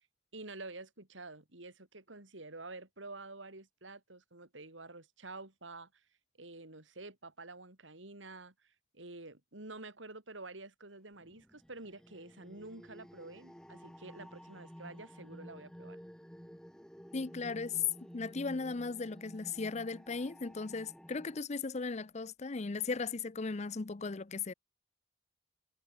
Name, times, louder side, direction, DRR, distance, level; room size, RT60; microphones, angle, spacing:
voice 1, 0.3-5.9 6.4-16.0, right 2 dB, 90° right, 4.2 m, -49 dB
sound 1, 11.2-21.4, equal, 5° left, 4.6 m, -53 dB
voice 2, 17.1-17.8 18.1-24.5, left 4 dB, 35° left, 0.6 m, -37 dB
head